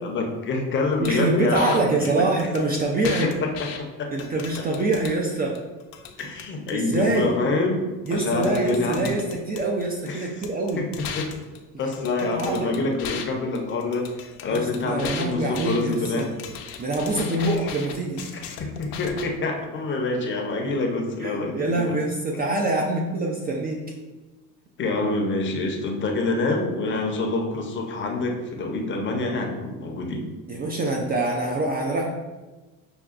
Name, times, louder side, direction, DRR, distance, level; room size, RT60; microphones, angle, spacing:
voice 1, 0.0-2.2 4.0-4.1 6.2-7.9 8.1-9.1 10.1-10.4 10.8-10.9 11.2-11.3 11.8-16.3 17.4-17.5 18.3-22.0 24.8-30.2, left 3 dB, 30° left, 2 dB, 0.6 m, -26 dB
sound 1, 1.0-1.2 1.5-1.8 2.1-2.2 2.4-3.8 4.2-5.2 5.6-6.7 8.1-8.2 8.4-10.1 10.4-13.3 13.6-19.3, left 7 dB, 80° left, 0.6 m, -37 dB
voice 2, 1.0-3.3 4.1-5.6 6.7-7.4 8.1-10.8 12.0-12.7 14.5-16.3 16.8-18.4 21.2-23.8 30.5-32.1, right 2 dB, 25° right, 0 dB, 0.3 m, -25 dB
5.7 x 2.2 x 2.4 m, 1.2 s
cardioid pair, 120°, 37 cm